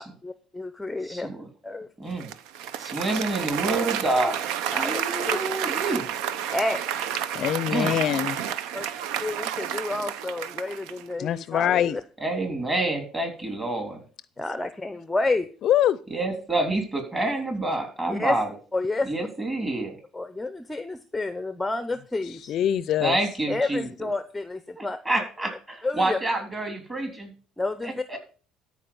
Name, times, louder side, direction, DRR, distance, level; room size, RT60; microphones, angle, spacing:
voice 1, 0.0-1.3 1.6-1.9 4.7-5.4 6.5-6.8 8.7-8.8 9.2-12.0 14.4-15.5 18.1-18.4 18.7-19.3 20.1-22.5 23.5-25.0 25.8-26.2 27.6-28.0, left 2 dB, 5° left, 0.6 m, -30 dB
voice 2, 1.0-1.5 2.0-2.3 2.8-4.4 4.8-6.0 7.7-7.9 12.2-14.0 16.1-18.5 19.0-20.0 23.0-24.1 24.8-27.3 27.8-28.2, right 2 dB, 20° right, 3.4 m, -28 dB
Applause, 2.2-11.1, right 10 dB, 85° right, 0.7 m, -30 dB
voice 3, 7.3-8.4 11.2-12.0 15.6-16.0 22.3-23.2, left 11 dB, 50° left, 0.4 m, -24 dB
13.5 x 4.8 x 6.9 m
cardioid pair, 135°, 0 cm